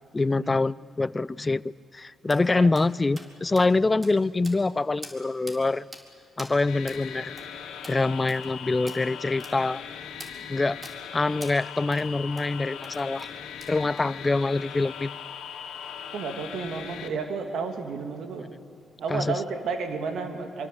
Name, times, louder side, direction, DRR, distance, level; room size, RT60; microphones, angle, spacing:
voice 1, 0.1-1.6 1.9-5.9 6.4-7.3 7.9-9.8 10.5-10.8 11.1-13.3 13.7-15.2 19.1-19.4, left 3 dB, 25° left, 0.5 m, -25 dB
sound 1, 2.3-2.4 2.8-2.9 3.2-3.3 3.6-3.7 4.0-4.1 4.4-4.7 5.0-5.2 5.5-5.6 5.9-6.0 6.4-6.5 6.9-7.0 7.4-7.5 7.8-8.0 8.3-8.5 8.9-9.0 9.4-9.5 10.2-10.3 10.8-11.0 11.4-11.6 11.9-12.1 12.4-12.5 12.8-13.3 13.6-14.0, right 1 dB, 25° right, 4.2 m, -43 dB
voice 2, 2.4-2.7 16.1-18.5 19.0-20.7, right 5 dB, 70° right, 2.8 m, -32 dB
sound 2, 6.7-17.1, left 8 dB, 80° left, 2.5 m, -39 dB
25.5 x 24.0 x 8.4 m
supercardioid pair, 55°, 0 cm